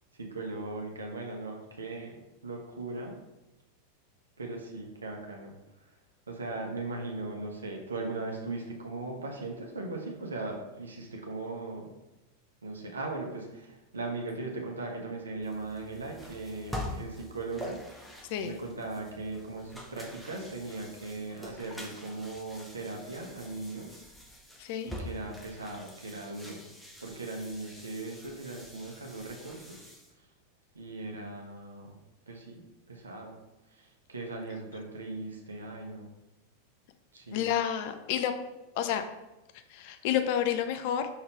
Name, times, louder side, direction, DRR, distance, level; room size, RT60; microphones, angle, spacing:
voice 1, 0.1-2.2 2.4-3.1 4.4-5.5 6.3-11.9 12.6-24.0 24.8-26.7 27.0-29.9 30.7-32.0 32.3-33.4 33.7-36.1 37.1-37.4, right 2 dB, 75° right, 1 dB, 1.2 m, -39 dB
sound 1, 15.4-30.1, left 1 dB, ahead, 1.0 m, -45 dB
voice 2, 24.6-24.9 37.3-38.3 38.7-39.0 39.7-41.1, left 10 dB, 50° left, 8 dB, 0.6 m, -29 dB
5.8 x 5.5 x 3.2 m, 1.0 s
figure-of-eight pair, 90°, 0 cm